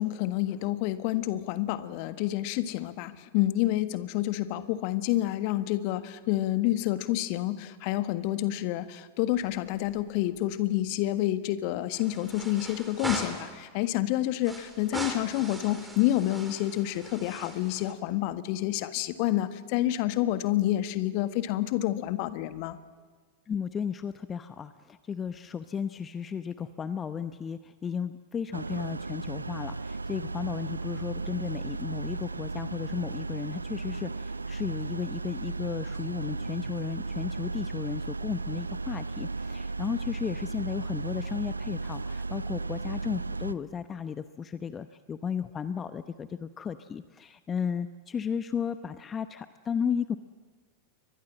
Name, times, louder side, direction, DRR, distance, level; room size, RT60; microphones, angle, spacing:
voice 1, 0.0-22.8, left 14 dB, 45° left, 11 dB, 1.5 m, -28 dB
sound 1, 9.4-10.1 10.4-10.5 11.9-13.6 14.4-17.9, right 2 dB, 10° right, 4.1 m, -40 dB
voice 2, 23.5-50.2, left 7 dB, 20° left, 12 dB, 0.8 m, -34 dB
sound 2, 28.5-43.5, right 3 dB, 80° right, 0.7 m, -35 dB
29.5 x 24.0 x 7.5 m, 1.5 s
figure-of-eight pair, 90°, 0 cm